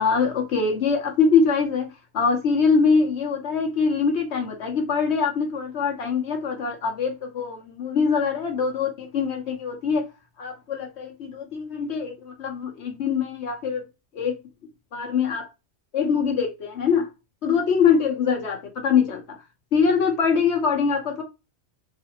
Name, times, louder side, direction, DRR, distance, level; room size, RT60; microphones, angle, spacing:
voice 1, 0.0-10.1 10.4-13.8 14.1-14.4 14.9-15.5 15.9-17.1 17.4-19.2 19.7-21.2, left 5 dB, 70° left, 1.1 m, -23 dB
3.2 x 2.5 x 2.8 m
omnidirectional pair, 1.2 m